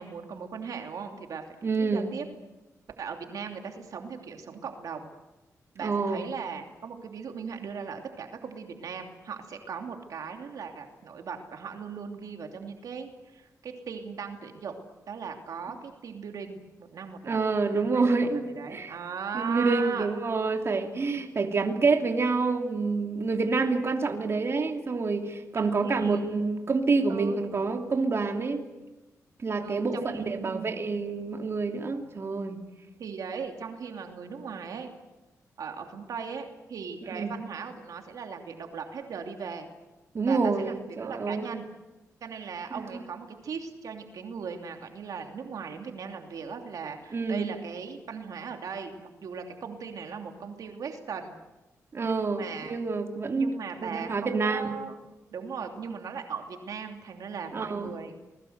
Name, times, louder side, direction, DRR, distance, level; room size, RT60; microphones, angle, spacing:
voice 1, 0.0-2.2 3.0-5.1 5.7-14.7 15.1-17.4 17.7-20.1 25.5-26.4 27.1-27.4 29.6-30.9 33.0-34.9 35.6-39.7 40.3-41.7 42.2-51.3 52.0-52.8 53.3-55.0 55.3-58.1, right 6 dB, 80° right, 4 dB, 2.8 m, -38 dB
voice 2, 1.6-2.1 5.8-6.3 17.2-18.9 19.3-28.6 29.4-32.6 37.1-37.3 40.1-41.6 47.1-47.5 51.9-53.5 53.8-54.7 57.5-57.9, right 4 dB, 45° right, 4 dB, 2.8 m, -27 dB
28.0 x 21.0 x 8.0 m, 1.0 s
cardioid pair, 90°, 6 cm